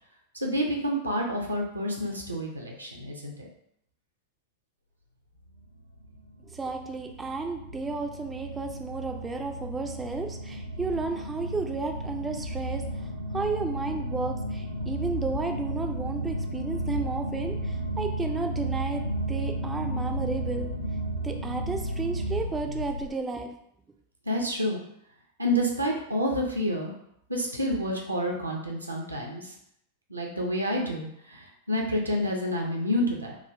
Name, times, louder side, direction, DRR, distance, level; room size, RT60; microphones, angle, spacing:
voice 1, 0.4-3.5 24.3-24.8 25.4-26.9 27.3-29.4 30.1-33.4, equal, 80° right, 0 dB, 0.6 m, -29 dB
sound 1, 5.6-23.1, right 1 dB, 85° left, 0.5 m, -33 dB
voice 2, 6.5-12.8 13.3-20.7 21.2-23.5, right 3 dB, 15° right, 3 dB, 0.3 m, -33 dB
3.6 x 2.3 x 3.2 m, 0.72 s
figure-of-eight pair, 90°, 0 cm